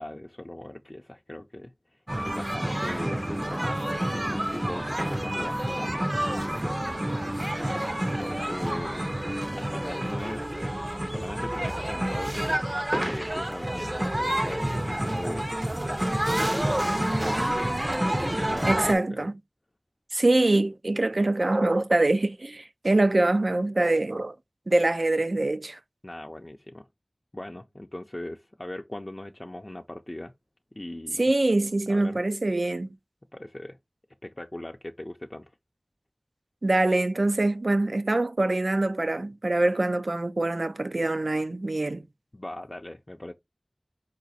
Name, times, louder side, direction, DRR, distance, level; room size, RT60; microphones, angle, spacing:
voice 1, 0.0-7.2 8.0-10.7 11.1-15.6 16.0-17.6 18.2-19.0 26.0-26.9 27.3-30.3 30.7-31.2 31.9-32.2 33.3-33.8 34.2-35.5 42.3-43.3, left 1 dB, 40° left, 0.4 m, -40 dB
sound 1, 2.1-18.9, right 1 dB, 30° right, 0.5 m, -28 dB
voice 2, 18.7-19.3 20.1-24.4 24.7-25.8 31.2-32.9 36.6-42.0, right 2 dB, 80° right, 0.4 m, -24 dB
4.9 x 2.5 x 4.1 m
wide cardioid pair, 40°, 0 cm